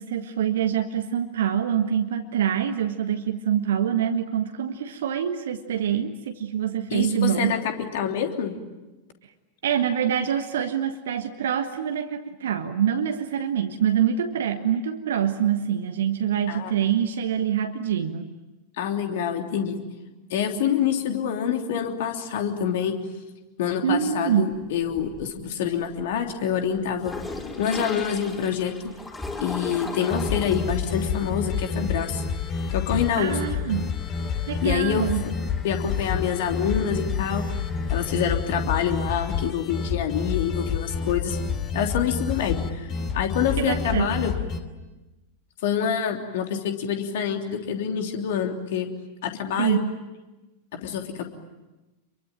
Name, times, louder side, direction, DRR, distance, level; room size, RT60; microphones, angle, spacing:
voice 1, 0.0-7.6 9.6-18.3 23.8-24.5 33.2-33.9 34.5-35.3 43.6-44.1 49.6-49.9, right 9 dB, 60° right, 6 dB, 1.3 m, -25 dB
voice 2, 6.9-8.5 16.5-16.7 18.8-19.8 20.3-22.9 23.6-27.1 27.6-28.7 29.4-32.2 32.7-33.4 34.6-35.1 35.6-37.4 37.9-41.4 41.7-44.3 45.6-48.9 49.2-49.8 50.7-51.2, left 8 dB, 55° left, 4 dB, 3.2 m, -26 dB
sound 1, 24.5-25.5 25.9-38.2, left 3 dB, 10° left, 5.1 m, -40 dB
sound 2, 30.0-44.6, left 6 dB, 30° left, 2.6 m, -29 dB
28.0 x 23.5 x 8.9 m, 1.1 s
figure-of-eight pair, 90°, 0 cm